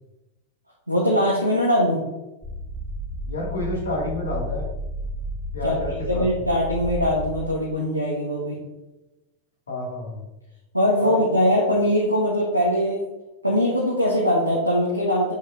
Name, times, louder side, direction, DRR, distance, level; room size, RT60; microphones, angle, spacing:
voice 1, 0.9-2.0 5.6-5.7 6.1-8.6 10.7-13.0 13.4-15.3, equal, 90° right, -4 dB, 1.1 m, -21 dB
sound 1, 2.4-7.4, equal, 15° right, 1.2 m, -32 dB
voice 2, 3.3-4.7 5.5-6.3 9.7-10.3 11.0-11.2, left 1 dB, 70° left, -4 dB, 2.3 m, -29 dB
8.0 x 5.6 x 2.7 m, 1.0 s
figure-of-eight pair, 90°, 0 cm